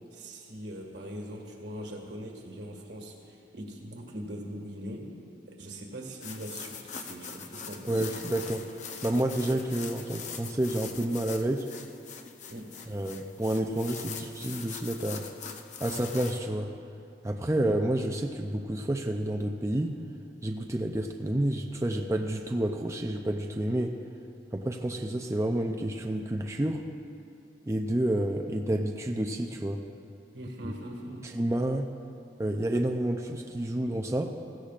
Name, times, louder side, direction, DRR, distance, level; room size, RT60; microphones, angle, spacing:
voice 1, 0.1-5.1 5.4-8.0 12.5-12.7 17.5-17.6 30.3-31.3, equal, 80° right, 0 dB, 1.9 m, -41 dB
sound 1, 6.2-16.4, left 6 dB, 45° left, 0.7 m, -42 dB
voice 2, 7.9-8.7 9.0-11.7 12.9-15.3 15.8-16.7 17.2-20.0 20.4-24.0 24.5-26.8 27.7-29.8 30.6-30.7 31.2-31.9 32.4-34.3, right 1 dB, 15° right, 2 dB, 0.5 m, -29 dB
16.5 x 15.5 x 2.5 m, 2.6 s
head